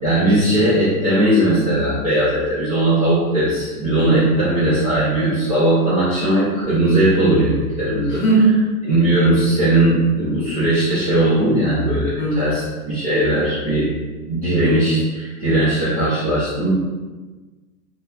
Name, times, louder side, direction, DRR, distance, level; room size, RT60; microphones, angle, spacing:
voice 1, 0.0-8.2 8.8-13.9 14.3-16.7, right 1 dB, 25° right, -13 dB, 0.3 m, -18 dB
voice 2, 3.9-4.3 8.1-8.7 12.2-12.6, right 2 dB, 20° left, -7 dB, 0.6 m, -18 dB
2.7 x 2.2 x 2.3 m, 1.3 s
hypercardioid pair, 135°, 48 cm